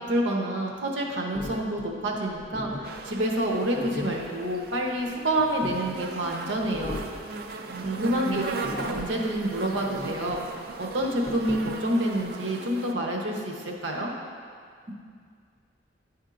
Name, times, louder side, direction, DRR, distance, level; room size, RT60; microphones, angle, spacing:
voice 1, 0.1-7.0 7.8-14.1, right 1 dB, 85° right, 0 dB, 0.8 m, -28 dB
sound 1, 1.3-12.3, left 1 dB, 30° left, 0.6 m, -40 dB
sound 2, 2.8-12.9, right 4 dB, 55° right, 0.4 m, -38 dB
voice 2, 7.7-8.4, right 5 dB, 35° right, -5 dB, 1.0 m, -35 dB
9.9 x 4.4 x 2.5 m, 2.1 s
head